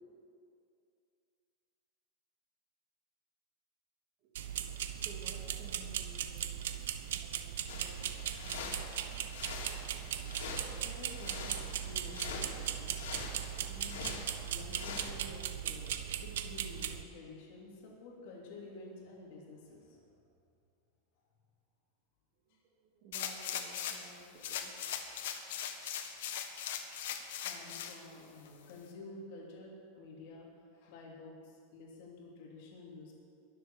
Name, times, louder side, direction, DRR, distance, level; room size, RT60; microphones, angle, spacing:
voice 1, 4.2-6.8 7.1-7.4 7.7-8.9 22.4-24.7, right 2 dB, 40° right, 0 dB, 2.1 m, -55 dB
sound 1, 4.4-17.0, right 10 dB, 85° right, 0.9 m, -38 dB
sound 2, 7.7-15.1, left 5 dB, 90° left, 2.6 m, -45 dB
voice 2, 10.6-20.0 27.1-33.1, left 2 dB, 50° left, -2 dB, 2.9 m, -51 dB
sound 3, 23.1-24.1 24.4-28.0 28.5-28.6, left 9 dB, 65° left, 1.5 m, -39 dB
22.0 x 7.7 x 7.0 m, 2.5 s
supercardioid pair, 175°, 0 cm